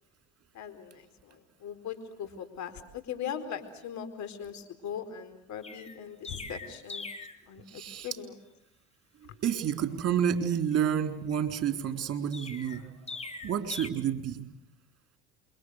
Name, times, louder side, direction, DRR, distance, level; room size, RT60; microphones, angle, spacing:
voice 1, 0.5-7.0 7.5-8.3, left 8 dB, 60° left, 9 dB, 4.4 m, -40 dB
Chirp tweet, 5.6-7.4 12.3-13.9, left 3 dB, 20° left, 2.7 m, -41 dB
voice 2, 7.7-8.1 9.4-12.9 13.4-14.5, right 8 dB, 45° right, 7 dB, 3.9 m, -29 dB
28.0 x 24.0 x 6.5 m, 0.80 s
supercardioid pair, 80°, 33 cm